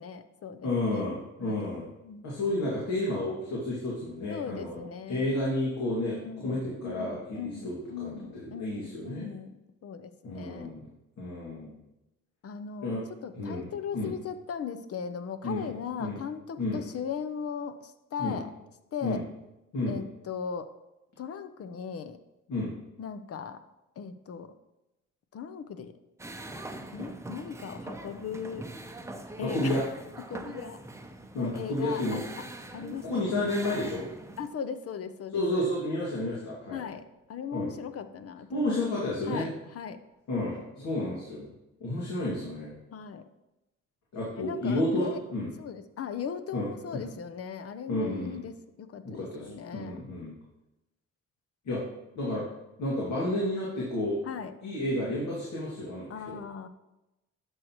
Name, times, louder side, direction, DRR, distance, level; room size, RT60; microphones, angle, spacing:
voice 1, 0.0-1.6 2.0-2.3 4.3-5.4 6.1-6.6 6.8-9.5 9.8-10.7 12.4-13.0 13.2-18.5 18.9-19.2 19.9-20.7 21.2-22.2 23.0-23.6 24.0-24.5 25.3-25.9 26.9-28.6 29.4-29.8 30.3-30.8 31.3-32.2 32.7-33.5 34.4-35.7 36.7-38.6 39.3-40.0 42.9-43.2 44.3-45.2 45.6-50.0 54.2-54.5 56.1-56.7, left 7 dB, 50° left, 11 dB, 0.7 m, -38 dB
voice 2, 0.6-1.9 2.2-4.8 5.1-9.3 10.2-10.9 11.2-11.8 12.8-13.0 13.3-13.7 13.9-14.1 15.4-15.7 16.0-16.1 16.6-16.8 18.2-18.4 19.0-19.2 19.7-20.0 22.5-22.7 29.4-29.8 31.3-32.2 33.0-34.1 35.3-36.8 37.5-37.7 38.5-39.5 40.3-41.5 41.8-42.7 44.1-45.5 46.5-46.7 47.9-48.4 49.0-50.3 51.7-51.8 52.1-52.4 52.8-54.2 54.6-56.4, left 1 dB, 65° left, -6 dB, 2.3 m, -31 dB
sound 1, 26.2-34.5, right 2 dB, 10° right, 0.7 m, -42 dB
10.5 x 6.4 x 3.1 m, 0.96 s
cardioid pair, 90°, 30 cm